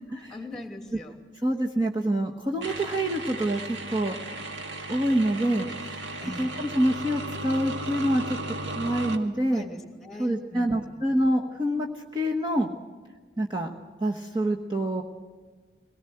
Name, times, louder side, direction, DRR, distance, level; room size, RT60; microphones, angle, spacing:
voice 1, 0.1-1.2 6.2-6.6 9.5-11.0, left 1 dB, ahead, 4 dB, 2.7 m, -41 dB
voice 2, 1.4-4.2 4.9-6.0 6.4-8.4 8.7-9.6 10.2-12.7 13.4-13.7 14.0-15.0, right 1 dB, 25° right, 0 dB, 1.2 m, -26 dB
sound 1, 2.6-9.2, right 2 dB, 85° right, 2.0 m, -35 dB
23.0 x 18.5 x 7.9 m, 1.5 s
head